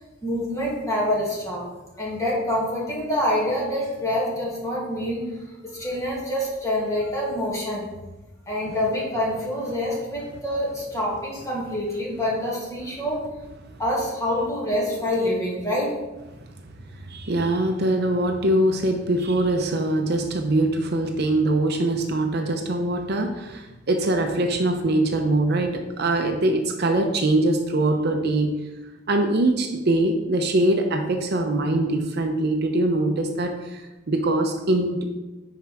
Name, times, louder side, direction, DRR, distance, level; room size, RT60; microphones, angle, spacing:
voice 1, 0.2-1.7 2.0-5.3 5.6-7.9 8.5-13.3 13.8-15.9, left 1 dB, 15° left, -5 dB, 2.2 m, -26 dB
voice 2, 17.0-28.6 29.1-33.8 34.1-35.0, right 1 dB, 60° right, 5 dB, 0.7 m, -23 dB
9.9 x 4.7 x 3.5 m, 1.1 s
head